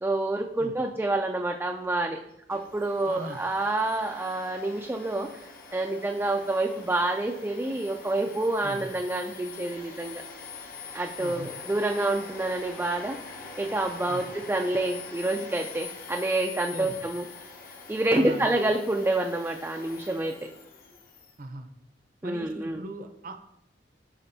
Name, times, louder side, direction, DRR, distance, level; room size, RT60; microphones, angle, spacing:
voice 1, 0.0-2.2 2.5-10.2 10.9-17.3 17.9-20.3 22.2-22.8, right 2 dB, 10° right, 2 dB, 0.4 m, -28 dB
Domestic sounds home sounds, 2.5-21.4, left 4 dB, 55° left, 1.0 m, -44 dB
voice 2, 3.1-3.4 8.6-8.9 11.2-11.5 14.1-14.2 16.7-16.9 18.1-18.4 21.4-21.7 22.2-23.4, right 2 dB, 50° right, 7 dB, 0.7 m, -39 dB
9.8 x 5.1 x 2.7 m, 0.80 s
head